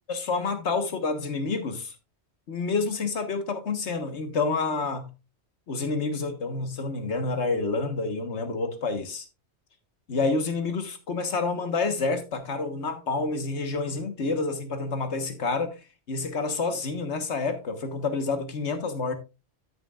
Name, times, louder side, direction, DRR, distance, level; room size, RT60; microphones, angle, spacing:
voice 1, 0.1-1.9 2.5-5.1 5.7-9.3 10.1-15.8 16.1-19.2, left 3 dB, 85° left, 1.6 m, -28 dB
13.0 x 6.9 x 2.4 m
omnidirectional pair, 1.1 m